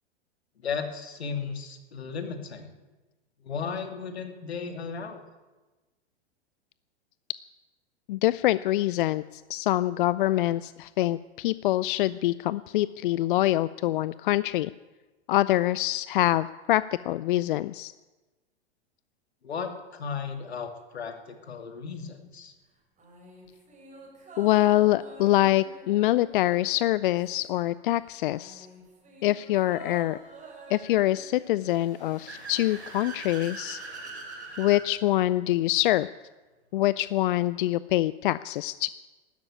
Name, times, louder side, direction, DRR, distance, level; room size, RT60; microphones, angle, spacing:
voice 1, 0.6-2.7 3.4-5.2 19.4-22.5, left 5 dB, 75° left, 7 dB, 2.3 m, -35 dB
voice 2, 8.1-14.7 15.3-17.9 24.4-28.7 29.2-30.2 30.7-33.8 34.6-36.1 36.7-38.9, left 15 dB, 55° left, 17 dB, 0.5 m, -25 dB
sound 1, 23.0-27.7 28.0-32.3 32.6-32.7, right 2 dB, 20° right, 5.7 m, -48 dB
Car / Accelerating revving vroom, 31.6-34.8, right 3 dB, 85° right, 4.6 m, -41 dB
13.0 x 12.0 x 9.5 m, 1.2 s
figure-of-eight pair, 100°, 32 cm